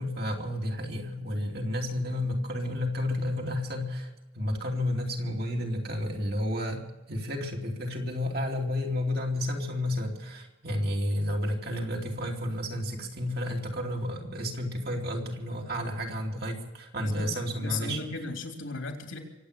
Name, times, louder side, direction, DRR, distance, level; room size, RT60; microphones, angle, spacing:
voice 1, 0.0-18.0, left 1 dB, 50° right, 0 dB, 2.9 m, -31 dB
voice 2, 17.0-19.2, left 4 dB, 80° left, 3 dB, 3.3 m, -36 dB
24.5 x 8.7 x 6.7 m, 1.0 s
head